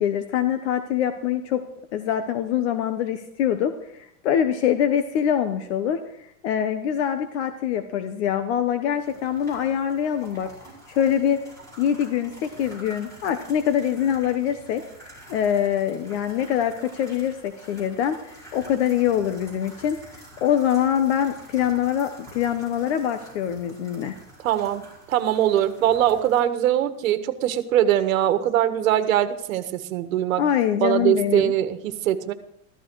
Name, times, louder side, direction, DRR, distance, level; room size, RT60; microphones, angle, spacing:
voice 1, 0.0-1.6 1.9-6.0 6.4-10.5 10.9-11.4 11.8-14.8 15.3-24.1 30.4-31.5, left 9 dB, 50° left, 8 dB, 1.1 m, -24 dB
sound 1, 8.9-26.4, right 1 dB, 5° left, 5.4 m, -47 dB
voice 2, 24.4-24.8 25.1-30.4 30.8-32.3, right 11 dB, 65° right, 9 dB, 1.6 m, -22 dB
14.5 x 13.5 x 4.7 m, 0.76 s
supercardioid pair, 165°, 42 cm